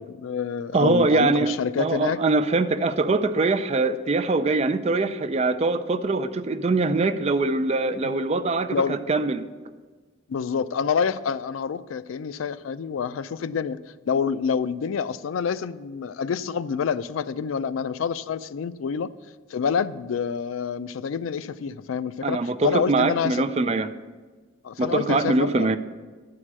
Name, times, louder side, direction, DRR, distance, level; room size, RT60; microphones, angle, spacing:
voice 1, 0.0-2.2 8.0-8.1 8.7-9.0 10.3-13.8 14.1-19.1 19.5-23.4 24.6-25.7, left 6 dB, 80° left, 15 dB, 0.4 m, -27 dB
voice 2, 0.7-1.5 1.8-9.5 22.2-23.9 24.8-25.8, right 3 dB, 30° right, 10 dB, 0.4 m, -23 dB
11.0 x 4.8 x 7.3 m, 1.4 s
head